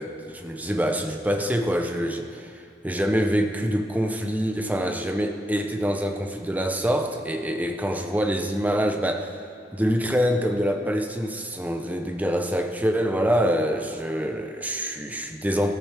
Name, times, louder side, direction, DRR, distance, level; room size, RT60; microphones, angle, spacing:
voice 1, 0.0-9.4 9.7-15.8, equal, 10° right, 5 dB, 0.7 m, -25 dB
18.0 x 13.0 x 3.5 m, 2.4 s
head